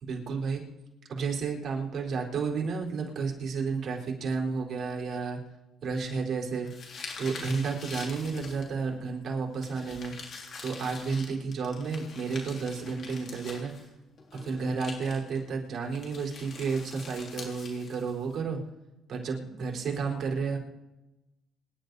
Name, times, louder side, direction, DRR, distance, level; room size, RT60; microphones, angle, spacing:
voice 1, 0.0-0.6 1.1-5.4 5.8-6.7 7.2-10.1 10.6-13.7 14.3-18.6 19.1-20.6, right 5 dB, 50° right, 0 dB, 4.0 m, -31 dB
sound 1, 5.9-8.9 9.6-13.9 14.2-15.4 15.9-18.3, left 4 dB, 50° left, 4.2 m, -44 dB
25.0 x 11.0 x 4.1 m, 1.0 s
cardioid pair, 95°, 0 cm